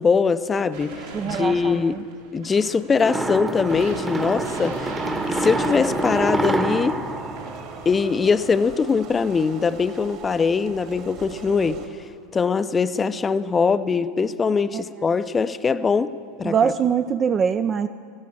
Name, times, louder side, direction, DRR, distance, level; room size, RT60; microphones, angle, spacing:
voice 1, 0.0-2.0 2.3-4.9 5.3-7.0 7.9-11.8 12.3-16.1 16.4-16.7, left 5 dB, 25° left, 0.5 m, -22 dB
sound 1, 0.7-3.0 3.7-6.8 7.3-8.0, right 4 dB, 75° right, 2.9 m, -39 dB
voice 2, 1.1-2.0 14.7-14.8 16.4-17.9, right 7 dB, 30° right, 0.4 m, -23 dB
sound 2, 3.0-8.3, right 2 dB, 15° right, 1.0 m, -26 dB
sound 3, 3.6-11.9, right 6 dB, 55° right, 2.2 m, -40 dB
15.0 x 13.0 x 7.3 m
hypercardioid pair, 85°, 0 cm